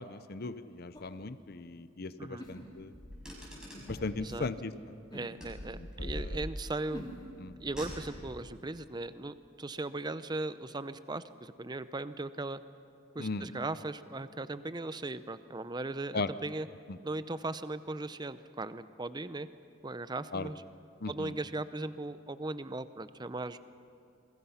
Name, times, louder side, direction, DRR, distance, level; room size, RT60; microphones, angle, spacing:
voice 1, 0.0-2.9 3.9-4.7 6.0-6.4 7.4-7.6 13.2-13.5 16.1-16.3 16.9-17.0 20.3-20.5 21.0-21.3, left 3 dB, 50° left, 13 dB, 0.7 m, -37 dB
sound 1, 0.9-1.2 2.4-3.0 3.7-3.9 5.1-5.3 6.9-7.2, equal, 20° left, 3.0 m, -45 dB
voice 2, 2.2-2.5 4.2-4.5 5.1-7.0 7.6-12.6 13.1-16.7 17.0-19.5 19.8-20.6 21.1-23.6, right 2 dB, 20° right, 13 dB, 0.6 m, -38 dB
Car, 2.9-4.2 5.4-6.7 7.6-8.4, equal, 5° right, 5.8 m, -42 dB
27.5 x 22.0 x 5.7 m, 2.7 s
head